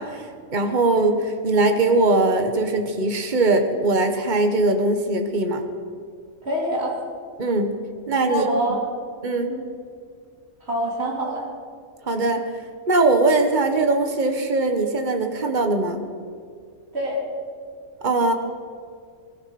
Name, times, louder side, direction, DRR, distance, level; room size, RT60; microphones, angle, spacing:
voice 1, 0.0-5.6 7.4-7.7 8.1-8.5 9.2-9.5 12.1-12.4 12.9-16.0 18.0-18.3, right 2 dB, 40° right, 5 dB, 1.7 m, -21 dB
voice 2, 6.4-7.0 8.2-8.8 9.4-9.6 10.6-11.5 16.9-17.2, equal, 55° right, -3 dB, 4.2 m, -25 dB
22.5 x 20.5 x 6.1 m, 2.2 s
omnidirectional pair, 1.3 m